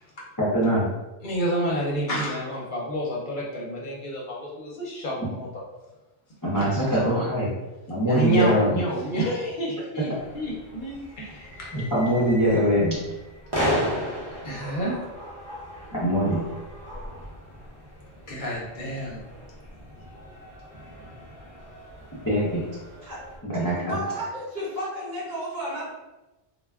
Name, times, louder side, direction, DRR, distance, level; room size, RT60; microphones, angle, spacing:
voice 1, 0.4-0.9 6.4-7.5 7.9-8.8 11.7-13.0 15.9-16.4 22.2-22.6 23.4-24.0, equal, 25° left, -8 dB, 0.5 m, -23 dB
voice 2, 1.2-5.5 6.5-7.2 8.1-11.7 14.4-15.0 18.3-19.2, right 1 dB, 60° left, -4 dB, 0.7 m, -29 dB
sound 1, 10.2-23.4, equal, 30° right, 0.6 m, -35 dB
voice 3, 23.7-25.9, right 1 dB, 50° right, -6 dB, 1.0 m, -32 dB
2.2 x 2.0 x 3.4 m, 1.1 s
omnidirectional pair, 1.0 m